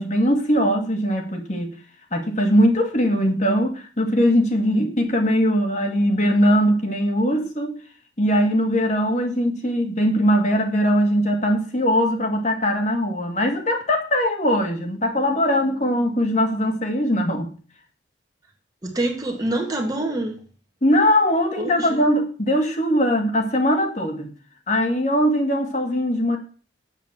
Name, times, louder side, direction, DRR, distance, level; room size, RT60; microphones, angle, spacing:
voice 1, 0.0-1.7 2.1-7.8 8.2-17.5 20.8-24.3 24.7-26.4, equal, 40° left, 1.9 m, -20 dB
voice 2, 18.8-20.4 21.6-22.0, right 1 dB, 20° right, 1.9 m, -26 dB
8.2 x 7.4 x 7.2 m
head